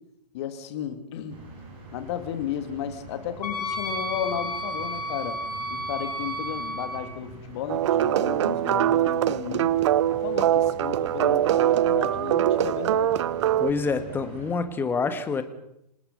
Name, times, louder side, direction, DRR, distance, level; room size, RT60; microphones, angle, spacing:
voice 1, 0.3-1.4 1.9-5.4 5.7-9.7 10.2-13.2, left 9 dB, 40° left, 9 dB, 2.7 m, -34 dB
sound 1, 1.3-14.5, right 3 dB, 25° right, 7.8 m, -45 dB
Wind instrument woodwind instrument, 3.4-7.0, equal, 65° left, 4.2 m, -32 dB
sound 2, 7.7-13.7, right 12 dB, 45° right, 0.9 m, -23 dB
voice 2, 13.6-15.4, left 4 dB, 10° left, 10 dB, 1.7 m, -27 dB
27.5 x 18.5 x 5.5 m, 0.79 s
figure-of-eight pair, 130°, 21 cm